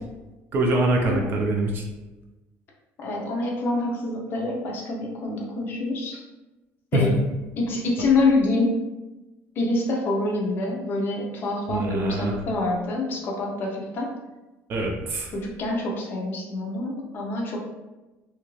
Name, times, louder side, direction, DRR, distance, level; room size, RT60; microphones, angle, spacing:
voice 1, 0.5-1.8 6.9-7.0 11.7-12.3 14.7-15.3, right 2 dB, 35° right, 0 dB, 0.4 m, -24 dB
voice 2, 3.0-6.2 6.9-7.1 7.6-8.7 9.6-14.1 15.3-17.7, left 2 dB, 35° left, -1 dB, 0.6 m, -26 dB
2.8 x 2.4 x 3.0 m, 1.1 s
cardioid pair, 175°, 6 cm